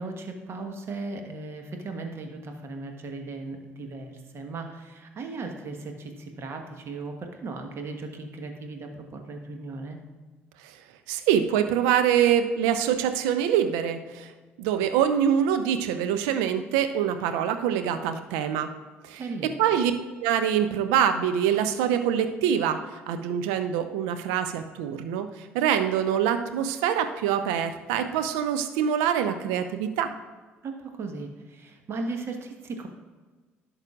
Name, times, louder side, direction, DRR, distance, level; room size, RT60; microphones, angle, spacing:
voice 1, 0.0-10.0 19.2-19.5 30.6-32.9, right 3 dB, 40° right, 4 dB, 1.4 m, -37 dB
voice 2, 11.1-14.3 14.6-18.7 19.0-19.2 19.6-19.9 20.2-22.8 23.1-30.1, right 9 dB, 65° right, 9 dB, 0.7 m, -25 dB
16.0 x 6.5 x 2.5 m, 1.3 s
figure-of-eight pair, 50°, 6 cm